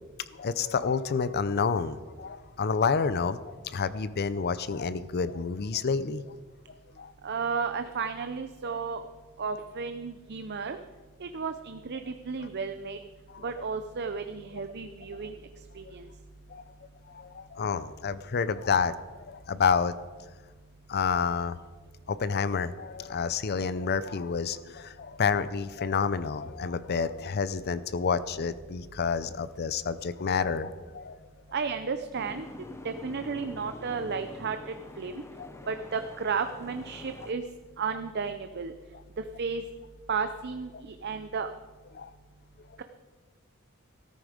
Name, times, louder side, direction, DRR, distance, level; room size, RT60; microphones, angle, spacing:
voice 1, 0.3-6.2 7.0-7.1 8.7-8.8 13.3-13.7 16.5-16.8 17.1-19.9 20.9-21.6 22.1-31.2 35.4-35.5 40.7-40.8 41.9-42.1, left 5 dB, 50° left, 15 dB, 0.5 m, -29 dB
voice 2, 7.2-9.0 9.4-10.8 11.2-13.0 13.4-15.4 15.7-16.1 31.5-32.5 32.8-35.2 35.7-37.4 37.8-38.7 39.2-39.6 40.1-41.5, right 5 dB, 50° right, 8 dB, 0.6 m, -33 dB
Boat Water vehicle, 32.1-37.3, left 2 dB, 15° left, 0.7 m, -45 dB
14.0 x 13.5 x 5.1 m, 1.4 s
head